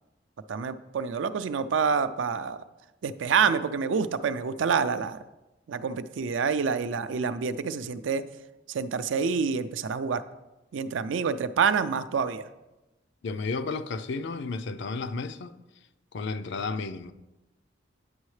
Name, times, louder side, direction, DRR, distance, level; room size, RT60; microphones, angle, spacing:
voice 1, 0.5-2.6 3.0-5.2 5.7-8.2 8.7-10.2 10.7-12.4, right 6 dB, 80° right, 0.4 m, -27 dB
voice 2, 13.2-15.5 16.1-17.1, left 4 dB, 65° left, 0.4 m, -32 dB
9.4 x 6.3 x 3.2 m
head